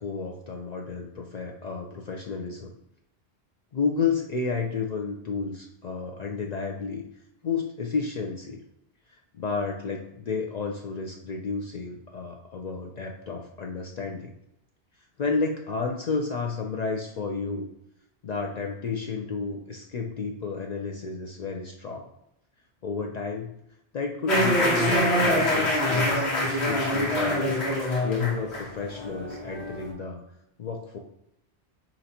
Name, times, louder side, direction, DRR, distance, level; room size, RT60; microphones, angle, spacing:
voice 1, 0.0-2.8 3.7-7.0 7.4-8.6 9.1-14.3 15.2-17.7 18.2-22.1 22.8-23.6 23.9-27.6 28.0-30.2 30.6-31.0, left 4 dB, 55° left, 1 dB, 0.5 m, -31 dB
sound 1, 24.3-29.9, left 1 dB, 85° left, 1.4 m, -25 dB
4.4 x 3.9 x 2.7 m, 0.81 s
omnidirectional pair, 1.1 m